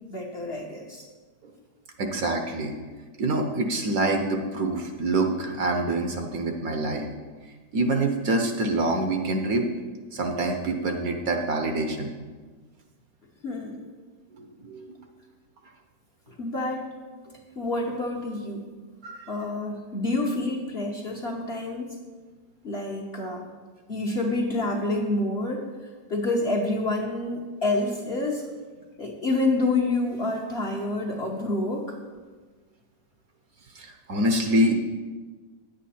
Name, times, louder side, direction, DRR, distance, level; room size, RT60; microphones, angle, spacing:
voice 1, 0.1-1.1 13.4-13.9 16.4-16.9 17.6-18.6 19.3-22.0 22.6-23.4 23.9-25.6 26.1-28.5 29.0-32.0, left 2 dB, 45° left, -1 dB, 1.0 m, -28 dB
voice 2, 2.0-2.7 3.2-7.1 7.7-9.7 10.1-12.1 14.6-14.9 19.0-19.3 33.7-34.7, right 2 dB, 60° right, 4 dB, 1.1 m, -26 dB
9.7 x 8.3 x 4.3 m, 1.4 s
omnidirectional pair, 1.9 m